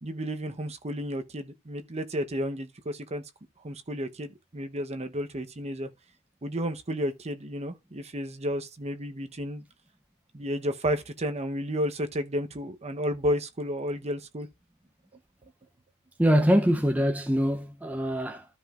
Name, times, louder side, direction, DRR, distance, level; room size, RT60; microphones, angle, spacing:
voice 1, 0.0-3.2 3.6-5.9 6.4-9.6 10.3-14.5, equal, 30° right, 0.9 m, -32 dB
voice 2, 16.2-18.5, equal, 5° right, 0.6 m, -23 dB
13.5 x 5.0 x 2.5 m
head